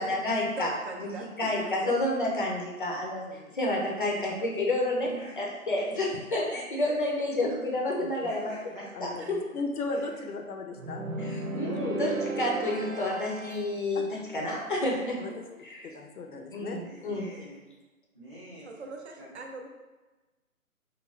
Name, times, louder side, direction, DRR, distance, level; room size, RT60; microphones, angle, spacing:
voice 1, 0.0-0.7 1.0-1.1 1.4-3.3 3.5-5.1 5.4-8.5 9.0-9.4 11.2-15.2 15.6-15.9 16.5-17.3, left 1 dB, 40° left, -2 dB, 0.4 m, -29 dB
voice 2, 0.5-1.9 5.0-5.1 9.2-9.3 9.9-10.1 15.3-15.6 18.6-19.7, right 3 dB, 50° right, 3 dB, 0.4 m, -42 dB
voice 3, 3.2-3.5 8.0-8.2 8.9-9.3 9.5-11.1 13.9-14.1 14.3-14.5 15.2-15.4 15.8-17.1, left 3 dB, 90° left, 3 dB, 0.6 m, -37 dB
voice 4, 5.0-5.4 6.8-7.0 8.3-9.1 9.9-10.0 16.7-17.6 18.1-18.7 19.2-19.3, equal, ahead, -18 dB, 0.6 m, -46 dB
sound 1, 10.8-13.8, right 2 dB, 75° right, 0.8 m, -34 dB
3.2 x 2.3 x 2.3 m, 1.2 s
figure-of-eight pair, 145°, 43 cm